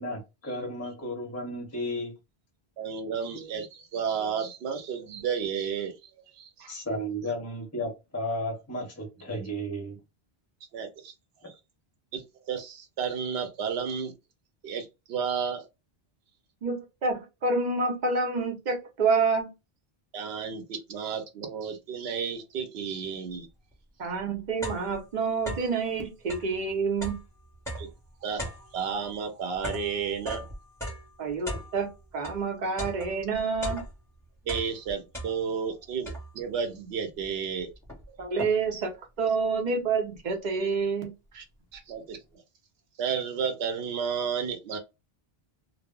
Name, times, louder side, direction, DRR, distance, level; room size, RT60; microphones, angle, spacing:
voice 1, 0.0-2.1 6.7-10.0, equal, 20° left, 0.6 m, -33 dB
voice 2, 2.8-6.1 6.4-6.8 10.7-11.1 11.4-11.5 12.1-14.1 14.6-15.7 20.1-23.5 27.8-27.9 28.2-30.5 34.5-37.7 41.9-42.2 43.0-44.8, right 6 dB, 85° right, 0.8 m, -32 dB
voice 3, 16.6-19.5 24.0-27.2 31.2-33.8 38.2-38.9 39.2-41.4, right 4 dB, 50° right, 0.7 m, -28 dB
sound 1, 23.7-23.8 24.2-25.8 26.2-32.4 32.8-34.1 34.4-35.7 36.1-36.6 37.2-37.3 37.6-38.8, equal, 5° left, 1.0 m, -38 dB
2.1 x 2.0 x 3.5 m
omnidirectional pair, 1.0 m